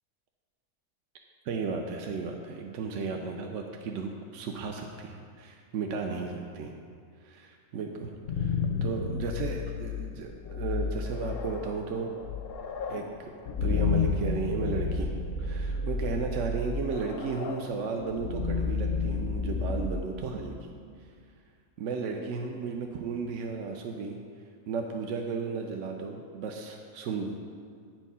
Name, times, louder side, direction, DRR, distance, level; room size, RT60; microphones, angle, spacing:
voice 1, 1.4-6.7 7.2-12.1 12.9-20.7 21.8-24.2 24.7-27.4, right 4 dB, 70° right, 2 dB, 0.9 m, -34 dB
sound 1, 8.0-20.9, left 4 dB, 60° left, 0.6 m, -31 dB
9.1 x 4.5 x 5.5 m, 2.1 s
omnidirectional pair, 1.4 m